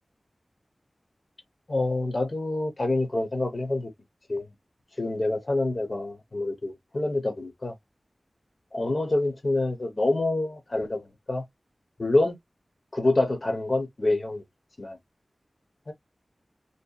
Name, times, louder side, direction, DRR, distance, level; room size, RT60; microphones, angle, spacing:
voice 1, 1.7-3.9 4.3-4.5 5.0-7.7 8.7-11.4 12.0-12.4 12.9-14.4 14.8-15.0 15.9-16.0, left 2 dB, 45° left, 0.6 m, -26 dB
2.6 x 2.1 x 2.2 m
wide cardioid pair, 80°, 0 cm